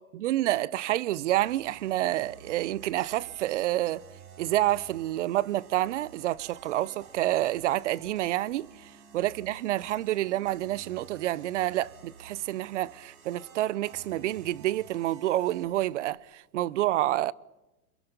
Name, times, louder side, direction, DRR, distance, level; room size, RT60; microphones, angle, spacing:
voice 1, 0.2-4.0 4.4-17.3, right 15 dB, 55° right, 0.7 m, -28 dB
sound 1, 1.3-16.1, right 6 dB, 70° right, 6.7 m, -52 dB
24.0 x 22.0 x 7.0 m
hypercardioid pair, 140°, 43 cm